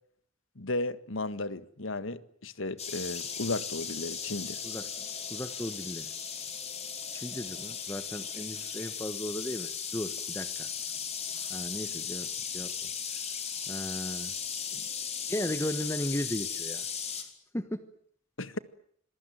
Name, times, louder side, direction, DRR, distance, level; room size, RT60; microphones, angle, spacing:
voice 1, 0.6-4.6 18.4-18.6, left 2 dB, 75° left, 1.7 m, -34 dB
sound 1, 2.8-17.2, left 7 dB, 35° left, 4.7 m, -37 dB
voice 2, 5.3-6.1 7.1-10.7 11.5-12.9 13.7-14.3 14.7-14.8 15.3-17.3 17.5-17.9, left 1 dB, 15° left, 1.3 m, -36 dB
27.0 x 22.0 x 9.4 m
head